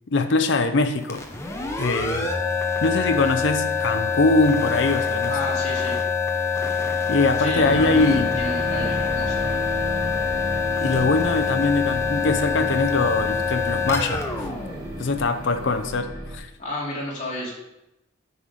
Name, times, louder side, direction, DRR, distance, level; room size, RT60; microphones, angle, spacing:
voice 1, 0.1-1.2 1.8-2.3 2.8-5.3 7.1-8.3 10.8-14.2 15.0-16.5, left 3 dB, 55° left, 8 dB, 0.6 m, -22 dB
sound 1, 1.0-15.6, left 5 dB, 15° left, 0.8 m, -25 dB
voice 2, 5.3-6.0 7.4-9.7 16.6-17.5, left 1 dB, 35° left, -5 dB, 2.7 m, -32 dB
sound 2, 7.5-16.4, right 1 dB, 20° right, 1.5 m, -33 dB
9.4 x 5.6 x 4.8 m, 0.90 s
head